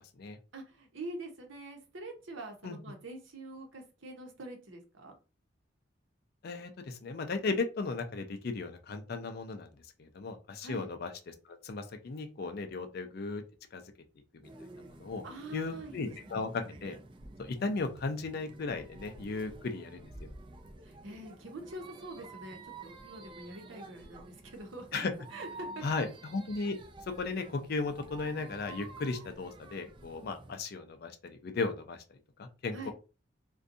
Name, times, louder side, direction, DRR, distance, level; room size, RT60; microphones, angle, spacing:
voice 1, 0.5-5.1 10.6-10.9 15.2-16.4 20.8-25.0 25.3-26.1 32.7-32.9, right 2 dB, 80° right, 3 dB, 0.8 m, -45 dB
voice 2, 6.4-9.7 10.0-13.4 13.7-13.8 14.3-14.5 14.8-15.2 15.5-17.0 17.4-20.3 24.9-25.1 25.8-26.8 27.1-32.0 32.4-32.9, left 3 dB, 55° left, 6 dB, 0.4 m, -36 dB
sound 1, 14.4-30.6, right 2 dB, 25° right, 0.3 m, -50 dB
2.6 x 2.2 x 2.6 m, 0.32 s
head